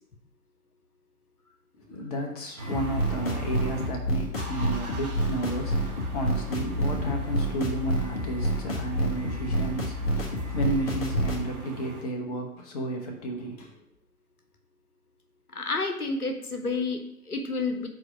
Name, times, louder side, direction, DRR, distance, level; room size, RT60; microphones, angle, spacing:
voice 1, 1.9-13.7, right 1 dB, 25° left, 2 dB, 1.0 m, -32 dB
sound 1, 2.6-3.9 4.3-12.0, right 2 dB, 25° right, 1.4 m, -39 dB
sound 2, 2.7-11.4, equal, 40° left, 1.4 m, -29 dB
voice 2, 15.5-17.9, left 3 dB, 85° left, 6 dB, 1.0 m, -30 dB
4.9 x 4.2 x 5.8 m, 0.71 s
figure-of-eight pair, 130°, 44 cm